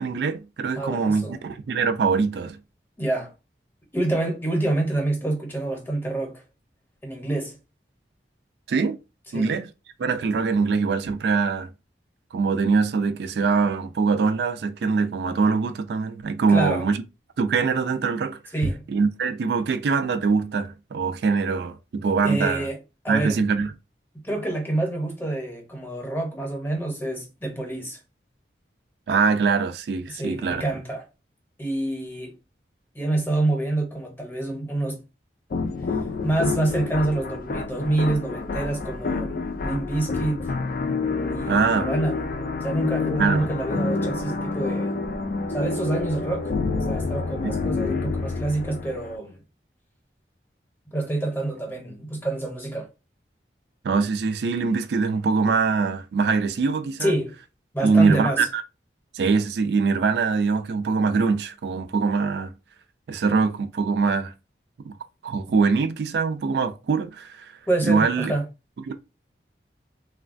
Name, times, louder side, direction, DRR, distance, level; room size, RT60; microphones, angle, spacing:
voice 1, 0.0-2.6 8.7-9.0 9.3-9.7 10.0-11.7 12.3-17.0 17.4-18.4 18.9-22.7 23.1-23.7 29.1-30.7 41.5-41.9 43.2-43.5 47.4-47.5 53.8-57.1 57.8-58.6 59.1-62.5 63.1-64.3 64.9-65.0 65.2-67.5 67.9-68.3 68.9-69.0, right 4 dB, 70° right, 0.3 m, -23 dB
voice 2, 0.7-1.4 3.0-3.3 3.9-6.4 7.0-7.6 9.3-9.6 16.5-16.9 18.5-18.8 22.2-22.8 23.0-23.4 24.2-28.0 30.1-31.0 31.6-32.4 32.9-35.0 35.9-40.5 41.3-42.2 42.6-44.9 45.5-46.5 46.9-49.4 50.9-52.9 57.0-57.4 57.7-58.5 67.7-68.4, right 2 dB, 10° left, 0.7 m, -27 dB
sound 1, 35.5-49.2, left 4 dB, 50° left, 0.4 m, -28 dB
3.1 x 2.2 x 2.5 m
head